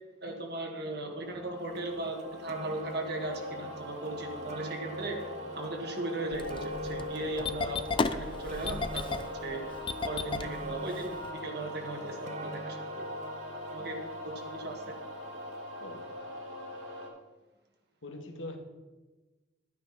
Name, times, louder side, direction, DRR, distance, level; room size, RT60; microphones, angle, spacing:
voice 1, 0.2-5.2 5.6-9.6 10.1-13.1 13.7-14.9, right 2 dB, 55° right, 2 dB, 1.8 m, -38 dB
sound 1, 1.2-17.1, left 1 dB, 80° right, 3.2 m, -41 dB
sound 2, 1.8-1.9 2.2-15.4 16.2-16.3, right 3 dB, 35° right, 0.5 m, -47 dB
Engine starting, 6.3-11.3, left 4 dB, 25° left, 0.4 m, -34 dB
voice 2, 18.0-18.6, left 2 dB, 85° left, 4 dB, 1.7 m, -42 dB
12.5 x 9.3 x 4.2 m, 1.2 s
head